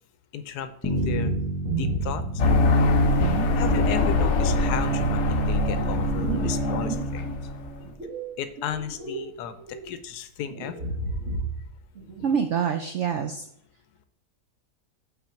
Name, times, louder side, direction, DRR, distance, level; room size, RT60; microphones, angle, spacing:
voice 1, 0.3-1.3 1.7-2.2 3.5-7.3 8.4-10.9, left 9 dB, 75° left, 11 dB, 1.1 m, -34 dB
Bass guitar, 0.8-4.9, right 1 dB, 20° left, 0.4 m, -33 dB
sound 1, 0.9-2.7 3.2-3.8 4.2-7.4 7.8-9.3 9.6-9.9 10.5-11.7 12.0-12.3, right 3 dB, 50° right, 1.5 m, -33 dB
sound 2, 2.4-7.8, left 2 dB, 55° left, 0.8 m, -23 dB
voice 2, 12.2-13.5, right 7 dB, 75° right, 7 dB, 0.6 m, -26 dB
5.8 x 4.2 x 5.7 m, 0.72 s
omnidirectional pair, 1.8 m